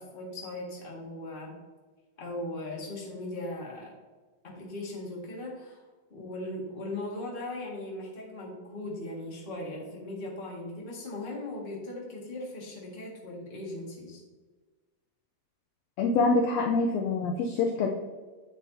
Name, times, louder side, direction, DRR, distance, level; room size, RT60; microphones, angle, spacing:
voice 1, 0.0-1.5 2.2-3.9 4.4-5.8 6.1-14.2, left 1 dB, 25° left, -3 dB, 1.4 m, -38 dB
voice 2, 16.0-17.9, left 3 dB, 80° left, 2 dB, 1.5 m, -25 dB
9.1 x 7.1 x 2.8 m, 1.3 s
omnidirectional pair, 3.7 m